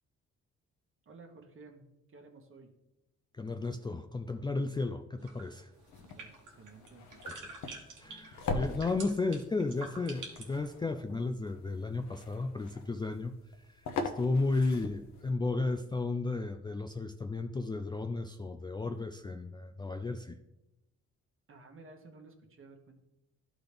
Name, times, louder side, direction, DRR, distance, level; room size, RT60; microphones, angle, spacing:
voice 1, 1.0-2.7 6.0-7.0 21.5-23.0, right 3 dB, 45° right, 4 dB, 1.3 m, -54 dB
voice 2, 3.3-5.7 7.3-7.6 8.0-13.3 13.7-20.4, left 3 dB, 15° left, 6 dB, 0.3 m, -34 dB
sound 1, 5.2-10.7, right 3 dB, 90° right, 1.4 m, -47 dB
sound 2, 5.7-15.3, left 3 dB, 70° left, 0.9 m, -42 dB
12.0 x 4.0 x 3.4 m, 0.93 s
cardioid pair, 90°, 30 cm